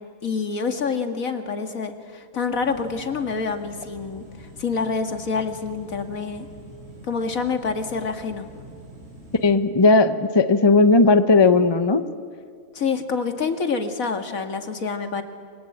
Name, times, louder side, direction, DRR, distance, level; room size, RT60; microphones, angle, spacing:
voice 1, 0.2-6.5 7.1-8.5 12.7-15.2, left 5 dB, 60° left, 6 dB, 2.2 m, -27 dB
sound 1, 2.6-9.5, right 1 dB, 50° right, 6.7 m, -45 dB
voice 2, 9.4-12.0, left 3 dB, 20° left, 10 dB, 0.7 m, -16 dB
28.5 x 23.5 x 8.8 m, 2.1 s
omnidirectional pair, 1.6 m